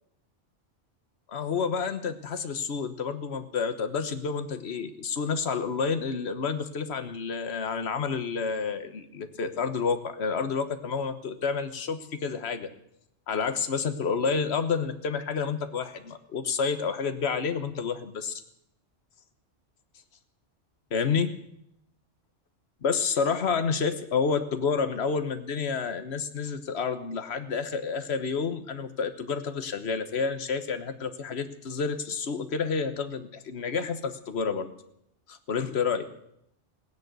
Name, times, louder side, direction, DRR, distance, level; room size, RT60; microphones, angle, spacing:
voice 1, 1.3-12.7 13.3-18.4 20.9-21.4 22.8-34.7 35.3-36.1, left 5 dB, 60° left, 9 dB, 1.4 m, -29 dB
17.0 x 10.0 x 8.1 m, 0.77 s
omnidirectional pair, 1.2 m